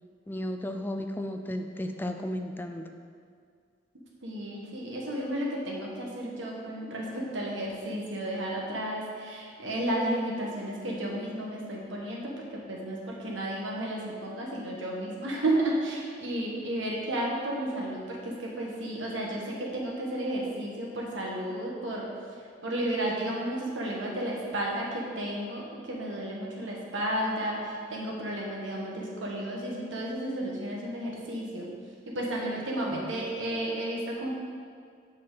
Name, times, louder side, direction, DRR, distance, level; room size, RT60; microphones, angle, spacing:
voice 1, 0.3-2.9 32.9-33.1, left 1 dB, 10° left, 5 dB, 0.4 m, -34 dB
voice 2, 4.2-22.1 22.6-31.7 32.0-34.3, right 1 dB, 85° right, -2 dB, 1.5 m, -32 dB
7.7 x 5.9 x 4.0 m, 2.2 s
head